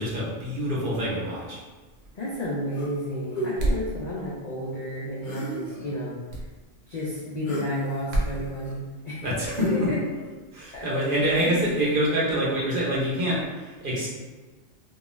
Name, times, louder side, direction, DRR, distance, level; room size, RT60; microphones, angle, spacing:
voice 1, 0.0-1.6 9.2-9.7 10.5-14.1, equal, 50° right, -6 dB, 0.8 m, -26 dB
voice 2, 2.1-6.2 6.9-9.3 9.7-10.0 10.7-10.9, equal, 85° left, -6 dB, 0.3 m, -31 dB
sound 1, 2.7-3.0 3.3-3.5 5.2-5.9 7.4-7.7 8.2-8.7 9.5-10.3 11.3-11.8, right 1 dB, 45° left, 0.8 m, -33 dB
sound 2, 3.6-3.9 6.3-6.5 8.1-8.4, right 1 dB, 80° right, 1.0 m, -25 dB
2.3 x 2.3 x 3.0 m, 1.3 s
omnidirectional pair, 1.3 m